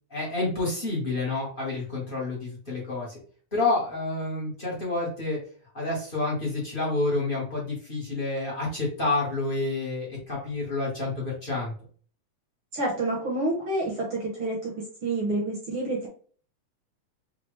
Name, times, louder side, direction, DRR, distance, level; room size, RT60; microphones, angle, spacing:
voice 1, 0.1-3.2 3.5-5.4 5.7-11.7, left 2 dB, 35° left, -5 dB, 0.8 m, -29 dB
voice 2, 12.7-14.7 15.0-16.1, right 2 dB, 60° right, -3 dB, 1.4 m, -28 dB
5.9 x 2.4 x 3.3 m, 0.43 s
omnidirectional pair, 3.6 m